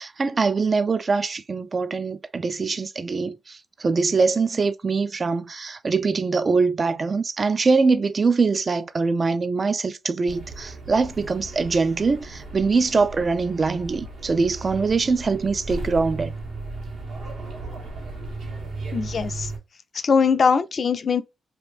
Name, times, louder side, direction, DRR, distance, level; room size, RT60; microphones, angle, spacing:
voice 1, 0.0-16.3, right 4 dB, 45° right, 0.3 m, -23 dB
sound 1, 10.3-19.6, right 2 dB, 80° right, 1.2 m, -35 dB
voice 2, 18.9-19.5 20.0-21.2, left 5 dB, 55° left, 0.4 m, -21 dB
2.8 x 2.6 x 3.1 m
cardioid pair, 60°, 0 cm